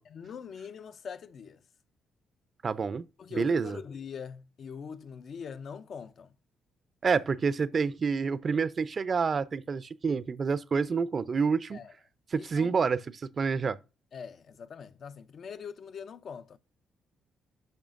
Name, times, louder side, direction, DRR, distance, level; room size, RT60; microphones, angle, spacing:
voice 1, 0.0-1.6 3.2-6.3 11.7-11.9 12.4-12.7 14.1-16.6, left 6 dB, 55° left, 0.4 m, -43 dB
voice 2, 2.6-3.8 7.0-11.8 12.3-13.0 13.4-13.8, right 5 dB, 40° right, 0.4 m, -28 dB
8.8 x 5.5 x 2.5 m
cardioid pair, 90°, 0 cm